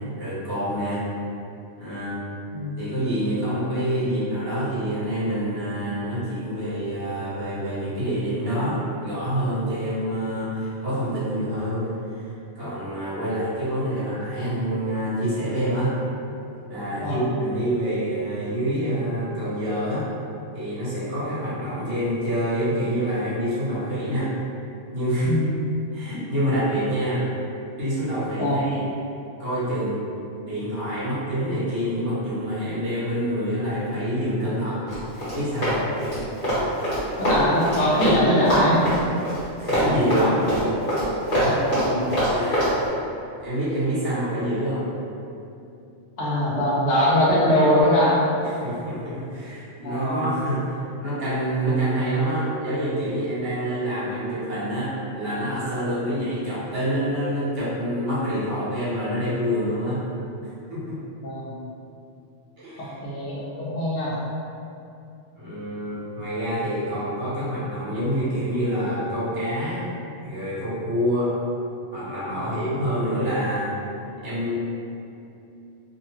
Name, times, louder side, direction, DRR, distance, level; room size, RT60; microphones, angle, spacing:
voice 1, 0.2-1.0 1.8-2.2 2.8-12.3 12.5-15.9 16.7-20.0 20.5-24.3 24.9-25.3 25.9-27.3 27.8-28.9 29.4-30.0 30.4-34.9 35.3-35.9 39.6-40.5 41.4-41.7 42.3-42.7 43.4-44.9 48.4-60.0 60.7-61.0 62.6-63.0 65.4-69.9 70.2-71.3 71.9-73.7 74.2-74.5, equal, 55° right, -10 dB, 1.1 m, -26 dB
Run, 34.9-38.2 38.4-42.7, equal, 35° left, 1.2 m, -23 dB
voice 2, 37.2-38.8 41.6-42.0 46.2-48.2 49.8-50.2 61.2-61.5 62.8-64.1 72.3-72.6, left 1 dB, 70° left, -7 dB, 0.9 m, -22 dB
2.6 x 2.2 x 2.9 m, 2.7 s
omnidirectional pair, 1.3 m